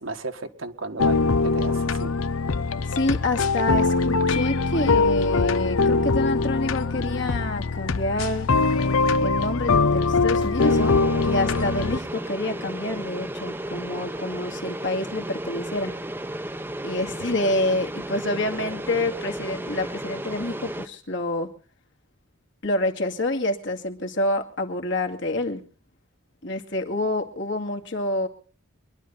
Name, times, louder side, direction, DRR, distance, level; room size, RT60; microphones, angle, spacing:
voice 1, 0.0-2.1, right 3 dB, 70° right, 6 dB, 1.7 m, -34 dB
sound 1, 1.0-12.0, left 3 dB, 80° left, 0.8 m, -22 dB
voice 2, 2.9-8.5 9.2-16.0 16.8-21.5 22.6-25.6 26.4-28.3, left 1 dB, 55° left, 3 dB, 2.2 m, -27 dB
sound 2, 10.4-12.7, equal, 25° left, 1.8 m, -44 dB
sound 3, 10.6-20.9, right 1 dB, 10° right, 0.8 m, -34 dB
24.0 x 11.5 x 4.1 m, 0.41 s
head